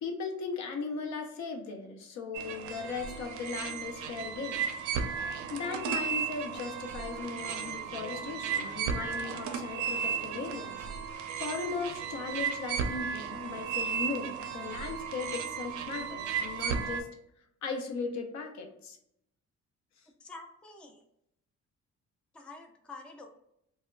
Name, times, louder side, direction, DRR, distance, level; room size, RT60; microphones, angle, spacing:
voice 1, 0.0-4.6 5.5-10.8 11.1-17.1 17.6-19.0, left 4 dB, 65° left, 4 dB, 0.6 m, -37 dB
sound 1, 2.3-17.0, right 7 dB, 75° right, 0.5 m, -35 dB
sound 2, 4.6-10.7, left 2 dB, 90° left, 1.0 m, -52 dB
voice 2, 20.2-21.1 22.3-23.3, left 3 dB, 5° left, 3 dB, 0.3 m, -48 dB
2.2 x 2.1 x 3.5 m, 0.77 s
cardioid pair, 90°, 30 cm